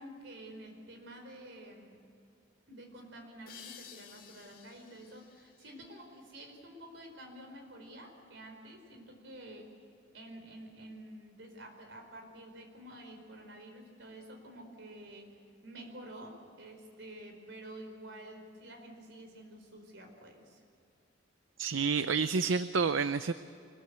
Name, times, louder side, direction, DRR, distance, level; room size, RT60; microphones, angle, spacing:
voice 1, 0.0-2.0 2.7-9.7 10.1-20.6, right 1 dB, 65° right, 4 dB, 4.7 m, -49 dB
sound 1, 3.5-6.9, left 8 dB, 50° left, 2.6 m, -54 dB
voice 2, 21.6-23.3, right 5 dB, 80° right, 12 dB, 0.6 m, -29 dB
24.0 x 21.0 x 8.2 m, 2.5 s
head